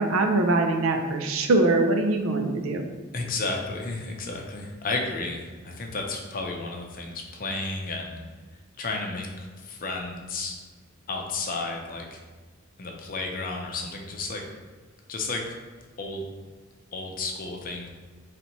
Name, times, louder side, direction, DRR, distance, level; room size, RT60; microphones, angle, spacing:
voice 1, 0.0-2.8, right 2 dB, 80° right, 5 dB, 0.5 m, -23 dB
voice 2, 3.1-8.2 8.8-10.6 11.1-12.2 12.8-14.4 15.1-15.5 16.0-16.3 16.9-17.9, left 3 dB, 45° left, 1 dB, 0.6 m, -32 dB
4.0 x 3.3 x 3.0 m, 1.4 s
head